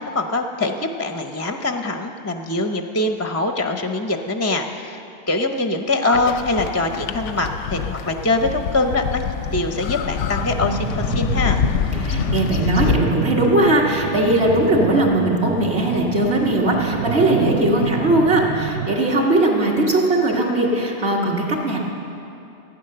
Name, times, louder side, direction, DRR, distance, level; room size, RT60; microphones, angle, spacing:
voice 1, 0.0-5.0 5.3-9.2 9.5-11.6, left 2 dB, 20° left, 5 dB, 0.4 m, -23 dB
sound 1, 6.1-13.0, left 7 dB, 85° left, 0.9 m, -25 dB
sound 2, 10.4-18.9, right 6 dB, 85° right, 1.3 m, -28 dB
voice 2, 12.0-21.8, right 1 dB, 65° right, -2 dB, 2.1 m, -19 dB
15.0 x 9.5 x 6.7 m, 2.7 s
omnidirectional pair, 1.2 m